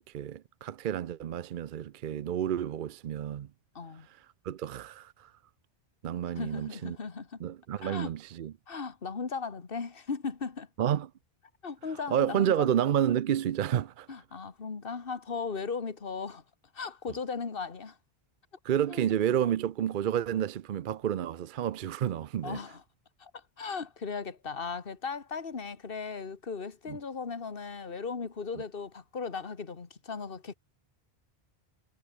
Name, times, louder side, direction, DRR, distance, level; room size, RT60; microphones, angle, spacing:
voice 1, 0.0-3.5 4.4-5.3 6.0-7.0 7.4-8.5 10.8-11.1 12.1-14.1 18.6-22.6 26.9-27.0, right 10 dB, 55° right, 0.7 m, -30 dB
voice 2, 3.8-4.1 6.4-7.4 7.8-8.1 8.7-10.7 11.6-12.7 14.1-16.4 16.7-18.0 18.9-19.1 22.4-22.8 23.2-30.5, left 5 dB, 60° left, 1.9 m, -37 dB
omnidirectional pair, 1.1 m